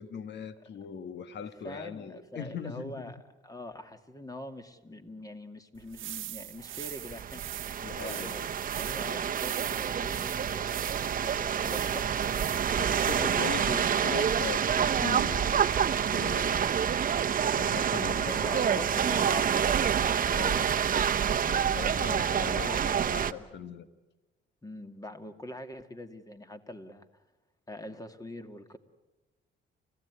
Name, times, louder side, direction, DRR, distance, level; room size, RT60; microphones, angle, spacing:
voice 1, 0.0-3.1 7.8-8.4 12.8-16.8 17.5-18.9 20.3-20.7 21.4-22.8 23.1-23.9, left 6 dB, 60° left, 1.5 m, -40 dB
voice 2, 1.6-12.2 12.8-13.3 14.0-14.2 17.4-20.8 21.6-23.5 24.6-27.1 27.7-28.8, left 1 dB, 15° left, 2.2 m, -44 dB
sound 1, 5.8-13.5, right 14 dB, 80° right, 1.1 m, -42 dB
sound 2, 6.9-23.3, right 8 dB, 45° right, 0.9 m, -28 dB
30.0 x 16.0 x 9.7 m
cardioid pair, 90°, 20 cm